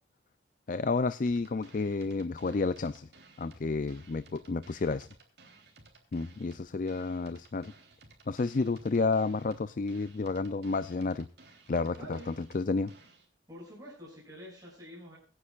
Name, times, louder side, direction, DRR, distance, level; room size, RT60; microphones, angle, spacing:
voice 1, 0.7-3.1 3.4-5.1 6.1-7.7 8.3-11.3 11.7-12.2 12.5-12.9, left 3 dB, 45° left, 14 dB, 0.4 m, -30 dB
sound 1, 1.3-13.3, right 3 dB, 60° right, 3.4 m, -57 dB
voice 2, 11.9-12.3 13.5-15.2, equal, 20° right, -7 dB, 6.6 m, -47 dB
24.5 x 9.6 x 2.4 m, 0.41 s
head